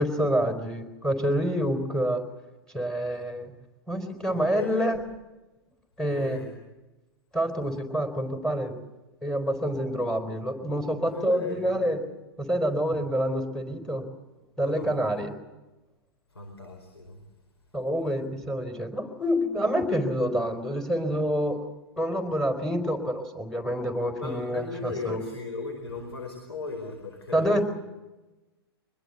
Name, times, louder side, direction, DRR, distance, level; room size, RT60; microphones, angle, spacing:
voice 1, 0.0-2.2 2.7-3.5 3.9-5.0 6.0-6.4 7.3-8.7 9.2-12.0 12.5-14.0 14.6-15.4 17.7-21.6 22.0-25.2 27.3-27.6, equal, 5° left, 8 dB, 4.4 m, -27 dB
voice 2, 4.3-4.9 6.1-6.6 11.0-11.8 14.6-15.1 16.3-17.3 24.2-27.6, left 4 dB, 85° left, 4 dB, 4.9 m, -37 dB
24.5 x 21.0 x 8.0 m, 1.1 s
hypercardioid pair, 110°, 13 cm